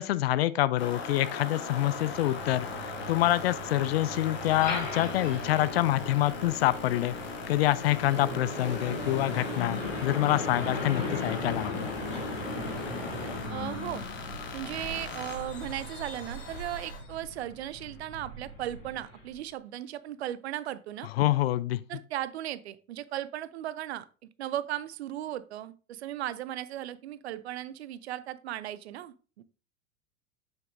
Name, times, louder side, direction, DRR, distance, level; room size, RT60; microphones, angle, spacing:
voice 1, 0.0-7.1 7.5-11.9 21.2-21.8, left 15 dB, 50° left, 0.5 m, -26 dB
sound 1, 0.8-17.0, left 4 dB, 30° left, 1.4 m, -40 dB
Truck, 1.8-19.4, left 2 dB, 70° left, 2.7 m, -39 dB
sound 2, 8.1-13.4, right 1 dB, 90° right, 2.2 m, -40 dB
voice 2, 13.5-14.0 14.5-21.1 21.9-24.1 24.4-29.4, right 12 dB, 55° right, 0.6 m, -36 dB
7.2 x 6.4 x 2.5 m
figure-of-eight pair, 90°, 39 cm